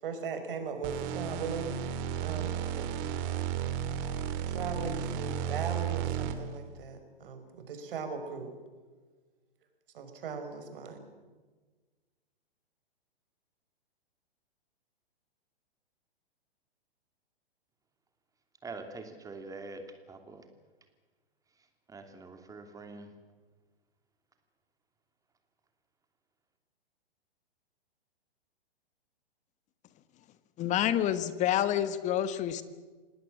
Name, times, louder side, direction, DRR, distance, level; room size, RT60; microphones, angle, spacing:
voice 1, 0.0-2.9 4.5-8.5 9.9-11.0, right 5 dB, 55° right, 5.2 m, -39 dB
sound 1, 0.8-6.6, right 9 dB, 35° right, 2.3 m, -33 dB
voice 2, 18.6-19.8 20.1-20.5 21.6-23.1, right 3 dB, 10° right, 2.8 m, -45 dB
voice 3, 30.6-32.6, left 11 dB, 25° left, 1.3 m, -28 dB
27.0 x 19.0 x 7.5 m
hypercardioid pair, 125°, 31 cm